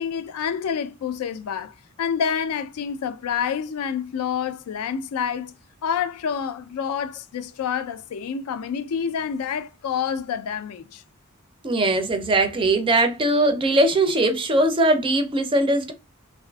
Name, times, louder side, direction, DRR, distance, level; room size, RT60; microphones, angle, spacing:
voice 1, 0.0-5.5 5.8-11.0, left 7 dB, 85° left, 0.4 m, -28 dB
voice 2, 11.6-15.9, right 2 dB, 25° right, 0.4 m, -20 dB
2.5 x 2.4 x 2.2 m
head